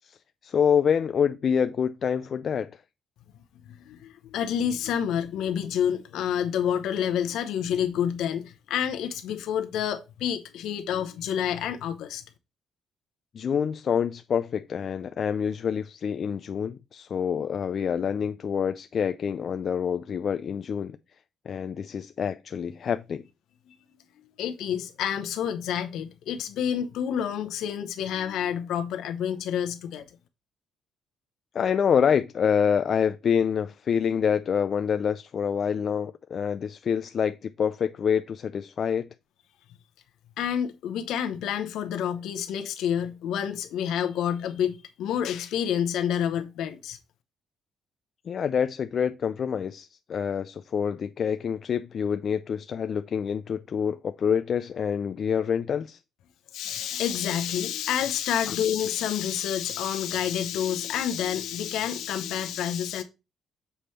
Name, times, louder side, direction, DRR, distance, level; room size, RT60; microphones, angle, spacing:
voice 1, 0.4-2.7 13.3-21.0 21.5-23.2 31.5-39.1 48.3-56.0 58.5-58.6, left 7 dB, 50° left, 0.4 m, -26 dB
voice 2, 3.7-12.2 23.7-23.8 24.4-30.0 40.4-47.0 56.5-63.0, left 9 dB, 80° left, 0.8 m, -28 dB
6.9 x 3.1 x 5.7 m
cardioid pair, 95°, 0 cm